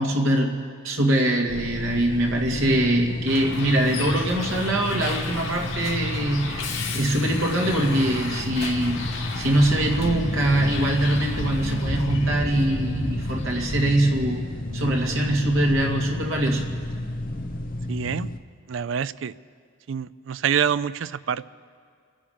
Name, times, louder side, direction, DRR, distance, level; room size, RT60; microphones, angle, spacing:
voice 1, 0.0-14.5 14.7-16.7, right 1 dB, 85° right, 0 dB, 2.1 m, -23 dB
sound 1, 1.5-18.4, left 1 dB, 45° left, 0.9 m, -31 dB
Bus, 3.3-13.8, left 3 dB, 80° left, 2.3 m, -33 dB
voice 2, 17.9-18.3 18.7-19.3 19.9-21.5, right 7 dB, 70° right, 17 dB, 0.4 m, -26 dB
27.5 x 10.0 x 5.1 m, 2.2 s
head